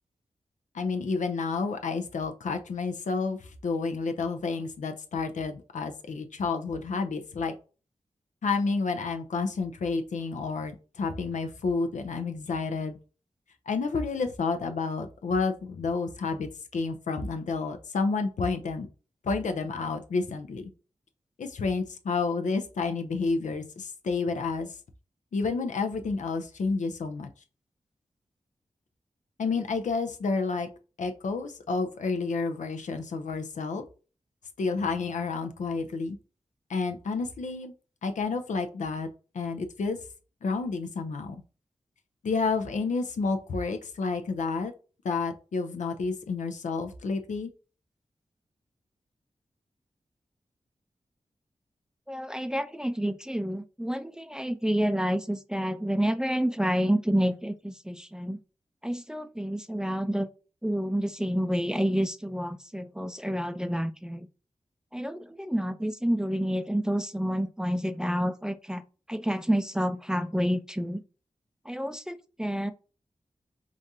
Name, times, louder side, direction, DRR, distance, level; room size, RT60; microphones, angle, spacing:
voice 1, 0.7-7.5 8.4-13.0 13.7-18.9 19.2-20.7 21.4-24.7 25.3-27.3 29.4-30.7 31.0-33.8 34.6-36.2 36.7-37.7 38.0-39.1 39.3-40.0 40.4-41.4 42.2-44.7 45.0-47.5, left 4 dB, 90° left, 0.6 m, -30 dB
voice 2, 52.1-58.4 58.8-60.3 60.6-64.3 64.9-71.0 71.7-72.7, equal, 5° right, 0.4 m, -29 dB
5.0 x 2.4 x 2.7 m
cardioid pair, 50°, 12 cm